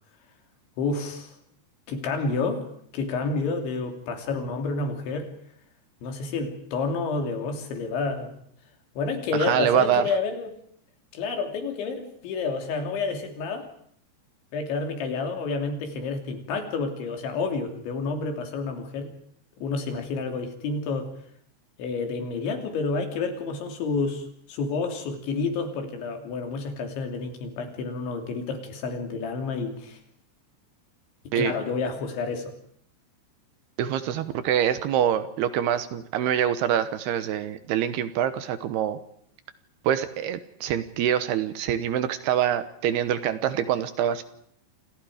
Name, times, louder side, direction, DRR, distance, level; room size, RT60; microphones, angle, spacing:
voice 1, 0.8-1.4 1.9-2.7 2.9-5.3 6.0-8.3 9.0-10.5 11.1-13.7 14.5-19.1 19.6-21.1 21.8-30.0 31.4-32.5, left 4 dB, 85° left, 4 dB, 5.4 m, -29 dB
voice 2, 9.4-10.1 31.3-31.5 33.8-39.0 39.8-44.2, right 10 dB, 70° right, 12 dB, 2.9 m, -25 dB
28.5 x 26.5 x 5.0 m, 0.65 s
omnidirectional pair, 5.2 m